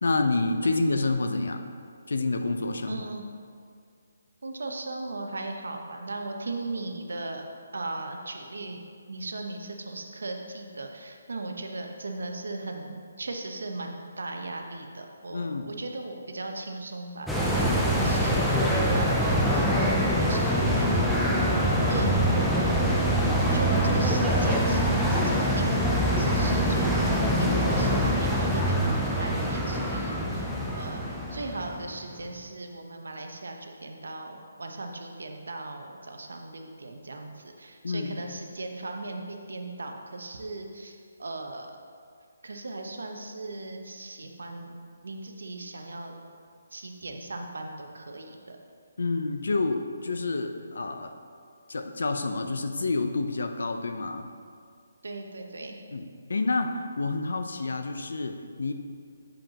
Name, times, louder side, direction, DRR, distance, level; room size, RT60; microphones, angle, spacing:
voice 1, 0.0-1.6 2.1-3.0 15.3-15.8 20.4-20.8 37.8-38.2 49.0-51.1 51.7-54.3 55.9-58.7, left 3 dB, 70° left, 6 dB, 0.5 m, -28 dB
voice 2, 2.9-3.2 4.4-7.5 7.7-8.8 9.1-21.1 21.9-23.0 23.5-30.5 30.8-41.7 42.4-46.2 46.7-48.6 55.0-55.7, right 2 dB, 85° right, 3 dB, 0.8 m, -38 dB
sound 1, 17.3-31.9 32.3-32.4, equal, ahead, 0.3 m, -24 dB
7.4 x 5.2 x 2.9 m, 2.2 s
hypercardioid pair, 175°, 0 cm